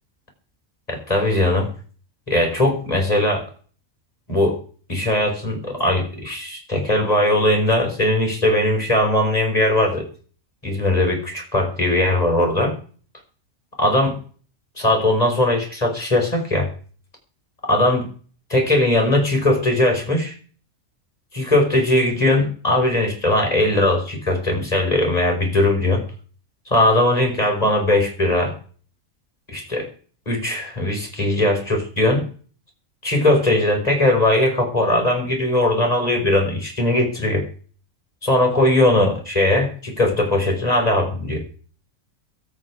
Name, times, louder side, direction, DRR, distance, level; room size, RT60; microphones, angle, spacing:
voice 1, 0.9-1.7 2.3-3.4 4.3-4.6 4.9-10.1 10.6-12.8 13.8-14.2 14.8-16.7 17.7-18.1 18.5-20.3 21.3-26.0 26.7-28.5 29.5-29.9 30.3-32.3 33.0-37.5 38.2-41.4, left 1 dB, 30° left, 2 dB, 5.6 m, -19 dB
22.5 x 8.7 x 4.9 m, 0.42 s
omnidirectional pair, 1.4 m